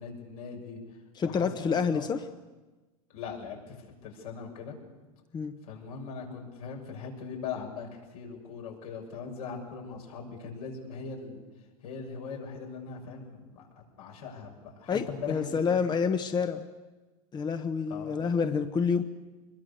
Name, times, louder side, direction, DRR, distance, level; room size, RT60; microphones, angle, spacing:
voice 1, 0.0-2.1 3.1-4.7 5.6-11.4 11.8-13.7 14.0-15.8 17.9-18.2, left 5 dB, 80° left, 1 dB, 6.6 m, -40 dB
voice 2, 1.2-2.2 5.3-5.6 14.9-16.6 17.3-19.0, left 6 dB, 25° left, 8 dB, 1.1 m, -28 dB
25.5 x 21.5 x 6.8 m, 1.2 s
supercardioid pair, 115°, 18 cm